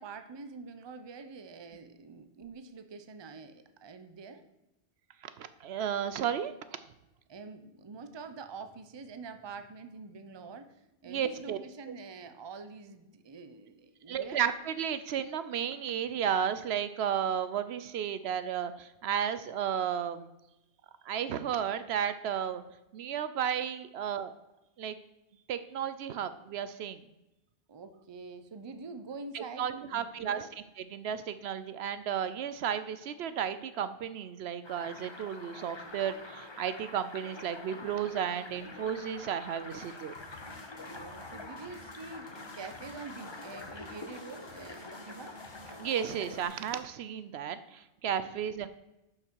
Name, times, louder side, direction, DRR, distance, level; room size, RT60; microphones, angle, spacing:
voice 1, 0.0-4.4 7.3-14.4 27.7-30.5 40.8-45.3 48.2-48.4, right 4 dB, 30° right, 9 dB, 0.6 m, -46 dB
voice 2, 5.2-6.8 11.1-11.6 14.1-20.3 21.0-22.6 22.9-24.3 24.8-25.0 25.5-27.0 29.3-30.5 30.9-40.1 45.8-48.7, right 8 dB, 70° right, 12 dB, 0.8 m, -33 dB
sound 1, 34.6-46.4, left 2 dB, 25° left, 0.8 m, -46 dB
sound 2, 39.7-46.8, left 1 dB, 90° left, 1.9 m, -53 dB
11.5 x 5.9 x 4.6 m, 0.95 s
omnidirectional pair, 1.1 m